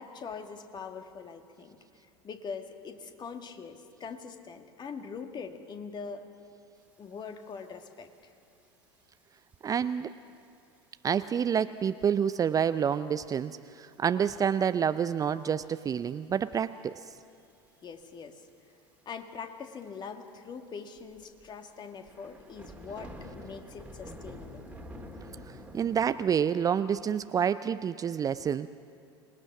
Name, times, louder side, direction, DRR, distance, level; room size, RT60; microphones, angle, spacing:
voice 1, 0.0-1.8 2.2-6.3 7.0-8.3 17.8-18.5 19.1-24.8, left 5 dB, 30° left, 6 dB, 1.9 m, -42 dB
sound 1, 7.4-7.5 7.8-8.2 8.8-9.0 9.6-9.7 10.4-10.5 10.8-10.9 11.1-11.2 12.3-12.6 12.9-13.0 13.9-14.0 14.6-15.0 15.4-15.5 16.1-16.8 17.8-18.1 18.4-18.5 18.8-18.9 19.1-19.2 19.8-19.9 20.3-20.4 20.9-26.1, equal, 10° right, 2.4 m, -47 dB
voice 2, 9.6-10.1 11.0-16.9 25.7-28.7, right 8 dB, 25° right, 14 dB, 0.5 m, -28 dB
26.0 x 20.5 x 6.1 m, 2.5 s
figure-of-eight pair, 75°, 14 cm